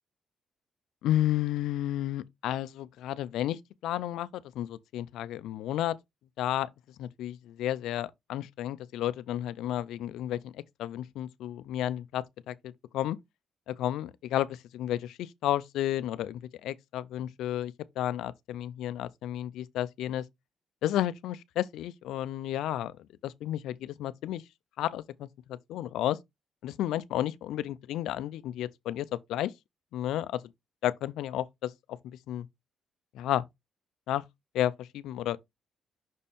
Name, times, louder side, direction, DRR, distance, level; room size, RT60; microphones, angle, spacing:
voice 1, 1.0-6.0 6.4-6.7 7.0-13.2 13.7-20.2 20.8-22.9 23.2-24.4 24.8-26.2 26.6-29.5 29.9-30.4 30.8-32.0 32.3-32.5 33.1-33.4 34.1-34.2 34.5-35.4, left 12 dB, 90° left, 0.5 m, -32 dB
6.2 x 4.2 x 3.5 m
cardioid pair, 110°, 0 cm